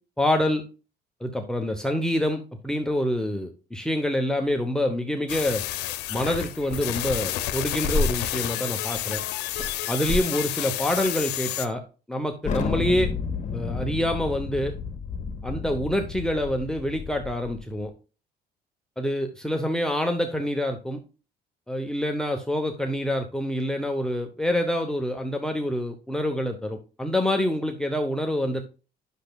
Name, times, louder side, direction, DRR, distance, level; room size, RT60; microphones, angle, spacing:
voice 1, 0.2-0.6 1.2-5.6 6.1-9.2 9.9-11.8 12.1-13.1 13.5-14.7 15.4-17.9 19.0-21.0 21.7-28.6, left 1 dB, 5° left, 3 dB, 0.8 m, -26 dB
sound 1, 5.3-11.7, left 14 dB, 85° left, 0.7 m, -30 dB
sound 2, 6.7-7.3 7.5-8.4 8.8-9.7 10.0-10.3 10.6-10.7 11.2-11.3, left 1 dB, 40° right, 4.1 m, -30 dB
Thunder, 12.4-17.6, left 5 dB, 45° left, 1.7 m, -31 dB
10.0 x 6.6 x 2.3 m, 0.34 s
cardioid pair, 110°, 17 cm